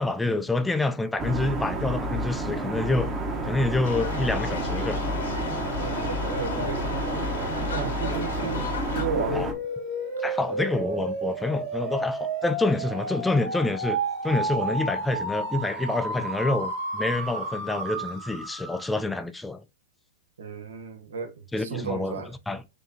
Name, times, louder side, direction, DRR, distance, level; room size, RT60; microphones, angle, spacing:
voice 1, 0.0-3.1 3.4-5.0 9.3-9.5 10.2-14.0 14.2-19.6 21.5-22.1 22.5-22.6, left 2 dB, 10° left, 0.3 m, -27 dB
sound 1, 1.2-9.5, right 1 dB, 25° right, 0.9 m, -30 dB
sound 2, 3.8-9.0, left 4 dB, 75° left, 0.9 m, -34 dB
voice 2, 5.8-9.5 10.2-10.4 20.4-22.3, right 6 dB, 80° right, 0.8 m, -34 dB
sound 3, 9.1-19.0, right 2 dB, 55° right, 1.9 m, -31 dB
4.7 x 2.7 x 2.7 m
hypercardioid pair, 115°, 0 cm